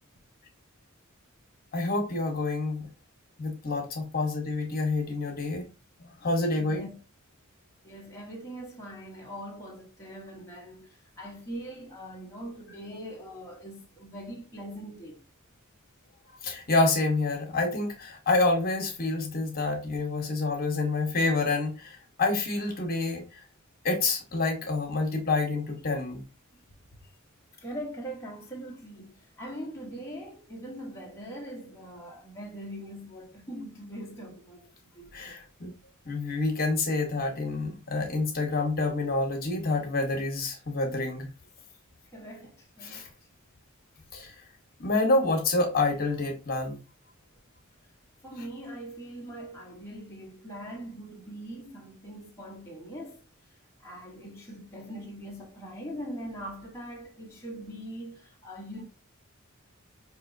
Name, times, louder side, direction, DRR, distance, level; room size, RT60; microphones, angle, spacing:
voice 1, 1.7-2.9 3.4-5.7 6.0-6.9 16.4-23.2 23.8-26.2 35.1-35.7 36.0-41.3 42.8-43.1 44.1-44.3 44.8-46.8, left 3 dB, 45° left, 1.0 m, -28 dB
voice 2, 6.6-7.0 7.8-15.2 27.6-35.4 42.1-43.0 48.2-53.2 53.8-58.8, equal, 15° left, 0.9 m, -42 dB
4.9 x 2.9 x 2.5 m
head